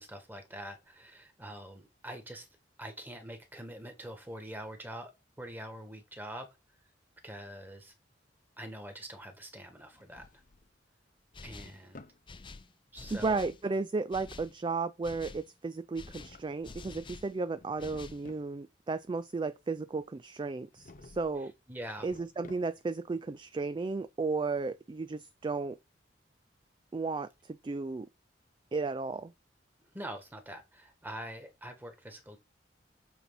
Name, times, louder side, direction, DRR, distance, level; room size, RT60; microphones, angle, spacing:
voice 1, 0.0-2.5 2.8-5.1 5.4-6.5 7.2-7.9 8.6-10.3 11.4-12.1 12.9-13.5 21.7-22.1 29.9-32.4, right 1 dB, 10° right, 1.7 m, -44 dB
Drawer open or close, 9.8-10.8 11.2-12.2 15.9-17.0 17.4-18.5 20.7-21.4 21.7-23.0, left 2 dB, 50° left, 0.9 m, -55 dB
sound 1, 11.3-11.8 12.3-13.6 14.1-14.5 15.0-15.5 15.9-17.3 17.8-18.3, left 3 dB, 25° left, 0.6 m, -48 dB
voice 2, 13.1-21.5 22.0-25.8 26.9-28.1 28.7-29.3, right 3 dB, 25° right, 0.3 m, -34 dB
8.0 x 4.3 x 4.1 m
head